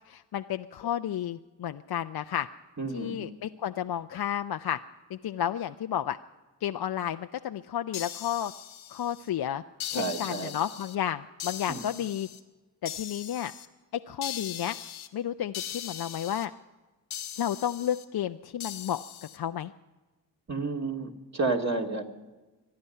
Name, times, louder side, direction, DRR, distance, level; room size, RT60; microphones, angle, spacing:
voice 1, 0.1-2.5 2.9-4.8 5.1-6.2 6.6-8.5 8.9-9.6 9.9-12.3 12.8-13.5 14.1-14.8 15.1-16.5 17.3-19.0 19.3-19.7, left 10 dB, 50° left, 8 dB, 0.6 m, -32 dB
voice 2, 2.8-3.3 9.9-10.5 11.7-11.8 20.5-22.0, right 3 dB, 35° right, 2 dB, 2.6 m, -31 dB
sound 1, 7.9-9.3 9.8-11.0 11.4-12.4 12.8-13.7 14.2-15.1 15.5-16.5 17.1-18.0 18.6-19.4, left 10 dB, 75° left, 1.3 m, -39 dB
24.5 x 9.6 x 5.6 m, 1.2 s
supercardioid pair, 45°, 48 cm